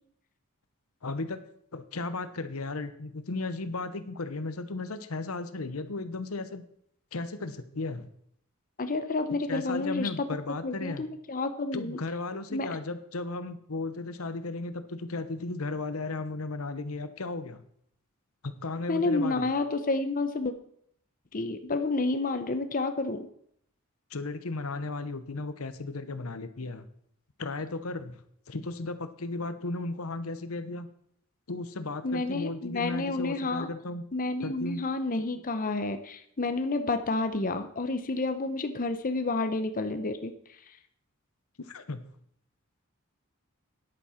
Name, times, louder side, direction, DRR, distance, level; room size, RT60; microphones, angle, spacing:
voice 1, 1.0-1.4 1.7-6.6 7.1-8.1 9.5-11.0 11.7-17.6 18.4-19.5 24.1-26.9 27.4-30.9 31.5-34.0 34.4-34.8 41.6-42.0, left 3 dB, 80° left, 11 dB, 1.0 m, -35 dB
voice 2, 8.8-10.3 10.6-12.0 12.5-12.7 18.9-20.5 21.3-23.3 32.0-33.7 34.1-40.3, left 3 dB, 40° left, 8 dB, 0.8 m, -30 dB
10.5 x 8.5 x 5.7 m, 0.68 s
head